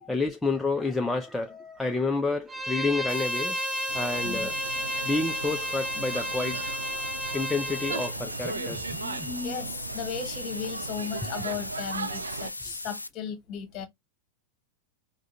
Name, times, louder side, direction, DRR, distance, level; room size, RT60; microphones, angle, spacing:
voice 1, 0.1-3.6 3.9-4.6 5.0-6.7 7.3-9.3, left 3 dB, 10° left, 0.4 m, -29 dB
Bowed string instrument, 2.5-8.1, equal, 15° right, 0.9 m, -33 dB
sound 1, 3.1-13.1, left 2 dB, 85° left, 0.3 m, -38 dB
sound 2, 3.9-12.5, right 5 dB, 75° right, 0.4 m, -38 dB
voice 2, 9.2-13.9, left 7 dB, 35° left, 1.1 m, -36 dB
4.8 x 2.2 x 2.7 m
figure-of-eight pair, 90°, 0 cm